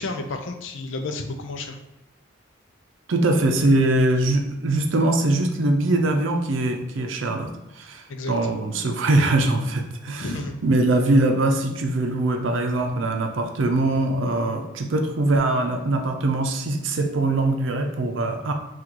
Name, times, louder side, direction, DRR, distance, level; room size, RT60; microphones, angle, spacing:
voice 1, 0.0-1.8 8.1-8.3 10.2-10.6, left 2 dB, 75° left, 5 dB, 0.5 m, -31 dB
voice 2, 3.1-10.3 10.6-18.5, right 2 dB, 85° right, 4 dB, 0.6 m, -22 dB
3.8 x 2.4 x 4.5 m, 0.88 s
head